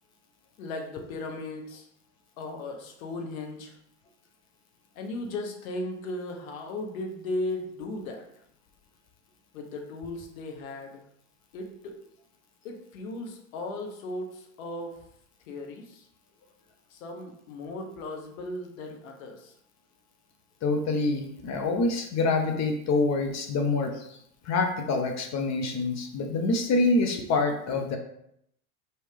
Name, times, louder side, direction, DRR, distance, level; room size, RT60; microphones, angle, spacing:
voice 1, 0.6-1.9 2.4-3.7 4.9-8.3 9.5-11.0 11.5-12.0 12.6-15.0 15.5-16.0 16.9-19.5 27.1-27.3, left 2 dB, 75° left, 3 dB, 1.1 m, -36 dB
voice 2, 20.6-24.2 24.4-28.0, left 3 dB, 40° left, 4 dB, 0.8 m, -26 dB
4.5 x 3.4 x 3.3 m, 0.73 s
hypercardioid pair, 90°, 42 cm